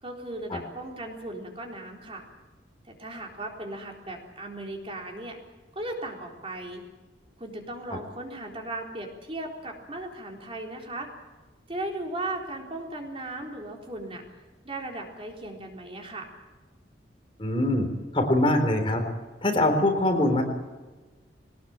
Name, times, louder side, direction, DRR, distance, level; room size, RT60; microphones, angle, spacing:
voice 1, 0.0-2.3 2.9-5.4 5.8-6.8 7.4-11.1 11.7-14.2 14.6-16.3, right 2 dB, 30° right, 1 dB, 4.0 m, -37 dB
voice 2, 17.4-17.9 18.1-19.0 19.4-20.4, left 1 dB, 30° left, 4 dB, 3.9 m, -23 dB
22.5 x 19.5 x 8.8 m, 1.2 s
head